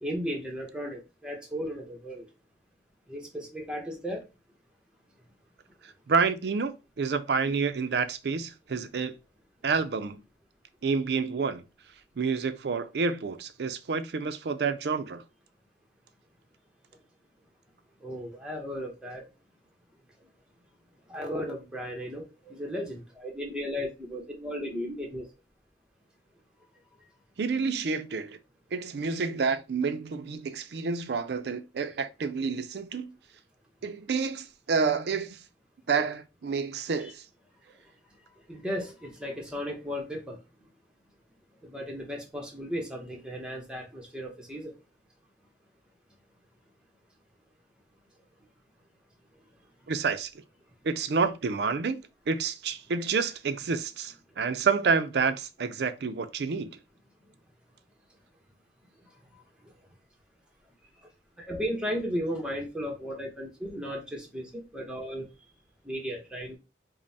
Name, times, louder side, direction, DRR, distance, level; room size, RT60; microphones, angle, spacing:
voice 1, 0.0-2.2 3.1-4.2 18.0-19.2 21.1-25.2 37.0-37.1 38.5-40.4 41.6-44.7 61.5-65.2 65.8-66.6, equal, 5° right, 0.8 m, -35 dB
voice 2, 6.1-9.1 9.6-10.2 10.8-11.6 12.2-15.2 27.4-28.4 28.7-33.1 33.8-35.4 35.9-37.2 49.9-50.3 50.8-56.8, right 5 dB, 65° right, 0.4 m, -29 dB
5.1 x 2.1 x 2.7 m
head